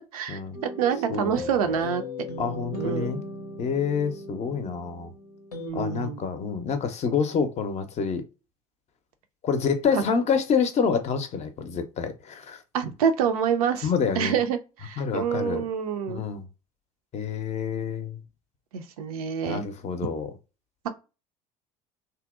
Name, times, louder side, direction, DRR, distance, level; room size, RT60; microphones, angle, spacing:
voice 1, 0.1-2.0 2.7-3.2 5.6-6.2 9.9-10.0 12.7-13.9 14.2-16.2 18.7-19.7, right 7 dB, 75° right, 0.4 m, -27 dB
sound 1, 0.5-5.7, equal, 85° left, 0.6 m, -37 dB
voice 2, 1.1-1.5 2.4-3.2 3.6-5.1 5.7-8.2 9.4-12.6 13.8-14.4 15.0-15.7 16.1-16.5 17.1-18.2 19.5-20.3, left 6 dB, 35° left, 0.5 m, -27 dB
2.7 x 2.0 x 2.3 m
figure-of-eight pair, 65°, 19 cm